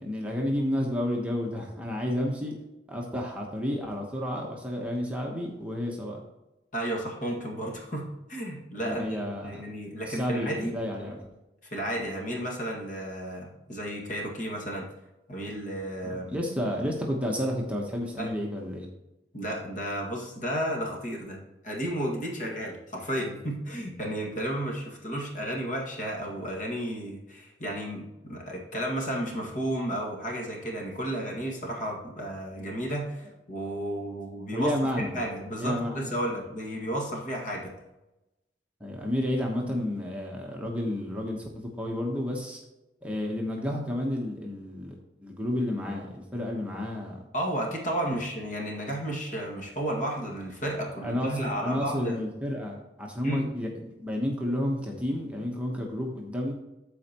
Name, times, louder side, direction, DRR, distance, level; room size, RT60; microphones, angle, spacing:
voice 1, 0.0-2.6 2.9-6.2 8.8-9.7 10.1-11.3 11.9-12.0 16.0-18.9 23.8-23.9 34.5-35.1 35.6-36.0 36.3-36.4 38.8-42.6 43.0-47.2 51.0-56.5, left 1 dB, 10° right, -1 dB, 1.0 m, -31 dB
voice 2, 6.7-10.7 11.7-14.9 15.3-16.4 18.2-18.3 19.3-37.7 47.3-52.2 53.2-53.5, right 1 dB, 45° left, -1 dB, 1.9 m, -33 dB
13.5 x 4.5 x 2.9 m, 0.97 s
head